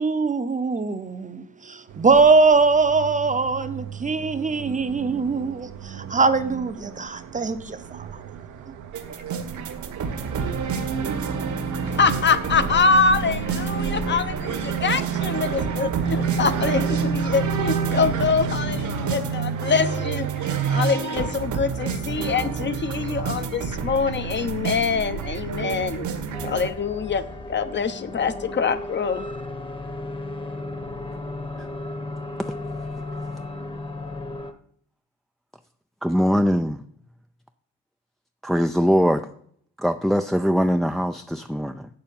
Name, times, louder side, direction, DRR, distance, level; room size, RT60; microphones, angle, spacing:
voice 1, 0.0-8.2, right 4 dB, 25° right, 0.8 m, -22 dB
sound 1, 1.9-20.9, right 6 dB, 90° right, 1.1 m, -31 dB
sound 2, 8.9-26.7, right 6 dB, 75° right, 1.6 m, -29 dB
voice 2, 11.9-26.1 26.4-29.3, left 5 dB, 35° left, 0.8 m, -24 dB
sound 3, 26.3-34.5, left 2 dB, 15° left, 1.1 m, -34 dB
voice 3, 36.0-36.8 38.4-39.3 39.8-41.9, equal, ahead, 0.4 m, -22 dB
7.7 x 6.8 x 7.2 m
cardioid pair, 90°, 30 cm